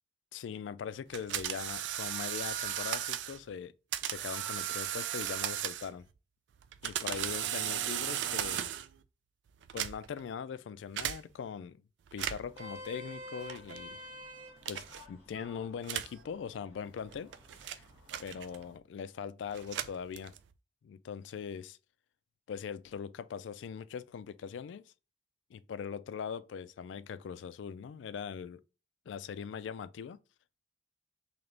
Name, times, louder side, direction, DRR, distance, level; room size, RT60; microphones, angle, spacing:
voice 1, 0.3-3.7 4.0-6.0 6.8-8.7 9.7-11.8 12.1-14.0 14.7-17.3 17.6-17.8 18.2-20.3 20.8-21.8 22.5-24.8 25.5-28.6 29.1-30.2, left 7 dB, 85° left, 0.3 m, -41 dB
sound 1, 1.1-3.4 3.9-6.0 6.6-9.0 9.6-10.2 11.0-11.2 12.1-12.6 13.5-13.8 14.6-15.0 15.8-16.2 17.0-18.7 19.5-20.5, right 11 dB, 70° right, 0.3 m, -36 dB
Vehicle horn car horn honking, 12.3-18.7, equal, 15° right, 1.5 m, -50 dB
3.4 x 2.9 x 3.7 m
head